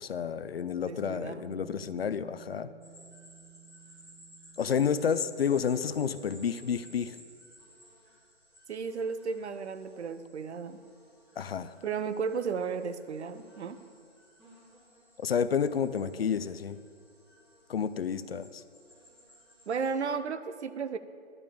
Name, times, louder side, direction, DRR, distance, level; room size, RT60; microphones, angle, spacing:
voice 1, 0.0-2.7 4.6-7.2 11.4-11.7 15.2-16.8 17.7-18.6, left 7 dB, 60° left, 14 dB, 0.5 m, -30 dB
Bass guitar, 0.8-7.1, right 6 dB, 10° left, 1.2 m, -53 dB
voice 2, 0.9-1.4 8.7-10.8 11.8-13.8 19.7-21.0, right 5 dB, 70° right, 12 dB, 0.7 m, -34 dB
sound 1, 2.8-19.9, equal, 5° right, 1.5 m, -57 dB
11.0 x 5.3 x 8.5 m, 2.3 s
hypercardioid pair, 170°, 35 cm